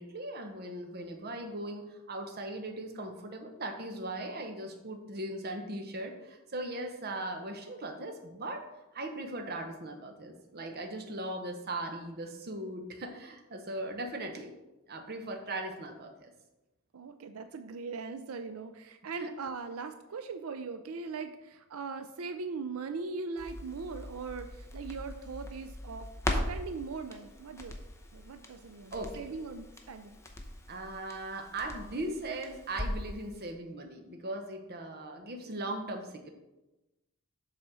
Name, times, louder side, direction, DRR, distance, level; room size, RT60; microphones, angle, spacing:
voice 1, 0.0-8.7 8.9-14.5 14.9-16.3 28.9-29.3 30.7-36.3, right 1 dB, 45° right, 4 dB, 0.9 m, -39 dB
voice 2, 16.9-26.1 26.5-27.8 28.1-30.2, right 4 dB, 75° right, 9 dB, 0.5 m, -40 dB
Crackle, 23.4-33.2 33.5-33.6, left 1 dB, 15° left, 0.8 m, -40 dB
7.4 x 4.1 x 6.2 m, 1.0 s
head